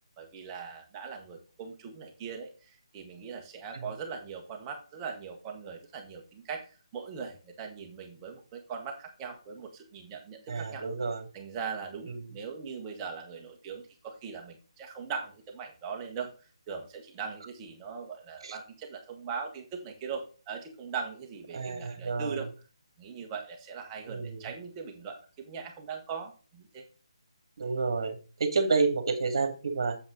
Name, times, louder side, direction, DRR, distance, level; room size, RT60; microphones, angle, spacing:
voice 1, 0.2-6.6 6.9-10.8 11.3-16.3 16.7-22.5 23.0-26.8, right 6 dB, 15° right, 3 dB, 1.4 m, -40 dB
voice 2, 10.5-11.3 12.1-12.3 18.4-18.6 21.5-22.4 24.1-24.5 27.6-30.0, right 4 dB, 50° right, 7 dB, 2.4 m, -30 dB
8.6 x 7.3 x 3.9 m, 0.35 s
hypercardioid pair, 165°, 3 cm